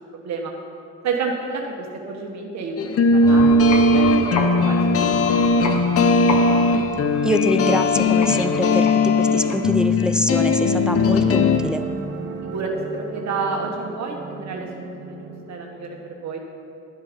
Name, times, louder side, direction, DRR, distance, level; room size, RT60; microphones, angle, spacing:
voice 1, 0.1-0.5 1.0-5.9 12.4-16.4, right 4 dB, 65° right, 1 dB, 1.3 m, -30 dB
sound 1, 2.8-11.6, left 2 dB, 50° left, 0.7 m, -18 dB
sound 2, 3.1-9.9, left 4 dB, 70° left, 1.3 m, -31 dB
voice 2, 7.2-11.8, left 1 dB, 5° right, 9 dB, 0.4 m, -25 dB
sound 3, 10.9-16.1, right 4 dB, 40° right, 1.4 m, -35 dB
11.5 x 7.5 x 5.1 m, 2.6 s
cardioid pair, 90°, 30 cm